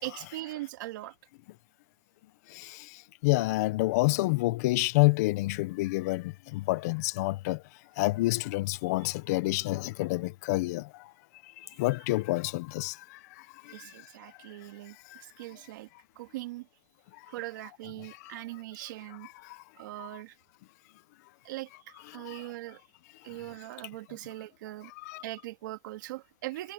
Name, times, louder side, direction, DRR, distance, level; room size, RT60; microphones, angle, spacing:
voice 1, 0.0-1.1 11.6-11.7 12.8-12.9 13.7-15.9 16.2-16.7 17.3-19.3 19.8-20.4 21.4-22.8 23.2-24.9 25.2-26.7, right 17 dB, 80° right, 2.7 m, -41 dB
voice 2, 3.2-7.6 8.0-10.8 11.8-12.9 20.0-20.1 22.3-22.4 25.1-25.2, left 21 dB, 55° left, 0.6 m, -27 dB
supercardioid pair, 180°, 10 cm